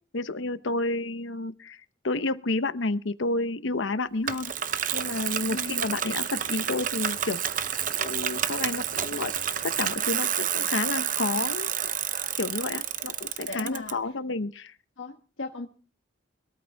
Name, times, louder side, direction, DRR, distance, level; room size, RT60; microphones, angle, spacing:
voice 1, 0.1-4.5 4.9-9.3 9.6-12.0 12.4-14.7, left 2 dB, 75° left, 12 dB, 0.9 m, -30 dB
Bicycle, 4.3-13.9, right 9 dB, 40° right, 0.7 m, -29 dB
voice 2, 5.5-5.9 13.4-14.0 15.0-15.7, left 2 dB, 90° left, 2 dB, 1.3 m, -37 dB
22.5 x 13.5 x 3.5 m, 0.40 s
head